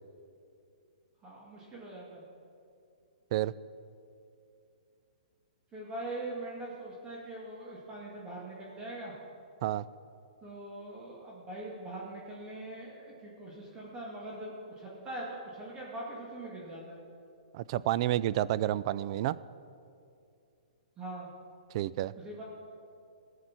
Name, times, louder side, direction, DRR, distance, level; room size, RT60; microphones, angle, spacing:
voice 1, 1.2-2.2 5.7-9.1 10.4-17.0 21.0-21.3 22.2-22.4, right 1 dB, 20° right, -4 dB, 2.0 m, -42 dB
voice 2, 17.5-19.4 21.7-22.1, right 14 dB, 45° right, 18 dB, 0.3 m, -30 dB
18.0 x 6.6 x 6.0 m, 2.5 s
hypercardioid pair, 140°, 4 cm